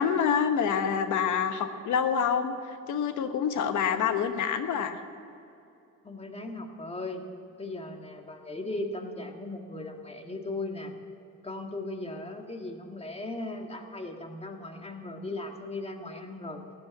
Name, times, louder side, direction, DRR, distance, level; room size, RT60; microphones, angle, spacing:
voice 1, 0.0-5.0, left 7 dB, 75° left, 9 dB, 1.1 m, -27 dB
voice 2, 6.0-7.2 7.6-10.9 11.4-16.6, left 2 dB, 20° left, 4 dB, 1.7 m, -37 dB
14.5 x 9.7 x 7.4 m, 2.7 s
cardioid pair, 90°, 30 cm